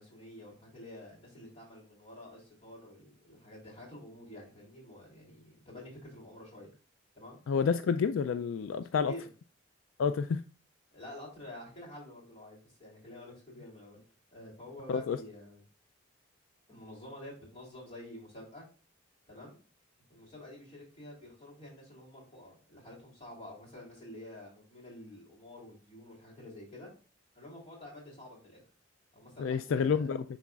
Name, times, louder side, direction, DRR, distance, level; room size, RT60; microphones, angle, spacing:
voice 1, 0.0-6.7 7.1-7.4 8.9-9.3 10.9-14.0 14.3-15.6 16.7-18.6 19.3-19.6 20.1-26.9 27.3-28.6 29.1-30.1, left 1 dB, 30° left, 3.1 m, -49 dB
voice 2, 7.5-9.1 10.0-10.4 14.9-15.2 29.4-30.2, left 6 dB, 85° left, 0.3 m, -29 dB
9.8 x 4.1 x 2.4 m
head